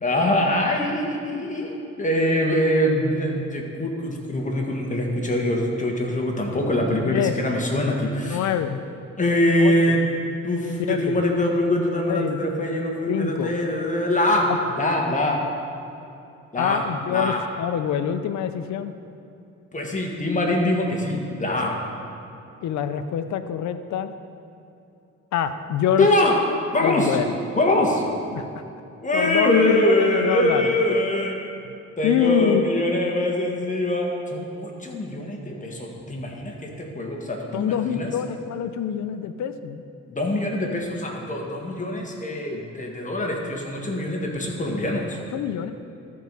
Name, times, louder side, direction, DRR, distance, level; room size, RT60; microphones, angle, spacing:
voice 1, 0.0-8.5 9.2-10.1 10.4-14.5 14.8-15.4 16.5-16.8 17.1-17.4 19.7-21.7 26.0-26.4 26.7-27.2 27.6-28.0 29.0-31.4 32.0-38.1 40.1-45.2, left 1 dB, 25° left, 0 dB, 1.6 m, -23 dB
voice 2, 7.0-7.4 8.3-8.8 9.6-10.0 10.9-11.2 12.1-12.4 13.1-13.5 16.6-18.9 22.6-24.1 25.3-26.1 26.8-27.3 28.3-28.6 29.1-30.7 32.0-32.7 37.5-39.8 45.3-45.7, left 9 dB, 70° left, 9 dB, 0.6 m, -25 dB
13.5 x 4.8 x 5.4 m, 2.7 s
cardioid pair, 90°, 30 cm